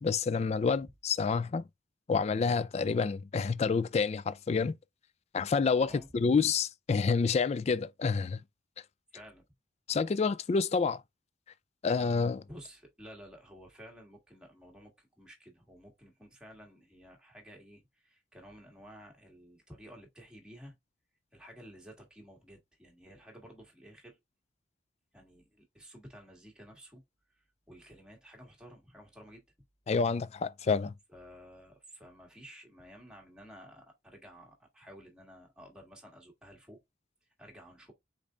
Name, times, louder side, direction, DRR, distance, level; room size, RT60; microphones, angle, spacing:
voice 1, 0.0-1.6 2.1-4.7 5.3-8.4 9.9-11.0 11.8-12.4 29.9-30.9, left 5 dB, 35° left, 0.3 m, -28 dB
voice 2, 5.8-6.1 9.1-9.4 12.5-20.8 21.3-24.2 25.1-27.0 27.3-29.4 31.1-36.8 37.4-37.9, equal, 5° right, 1.6 m, -53 dB
5.2 x 3.9 x 2.5 m
head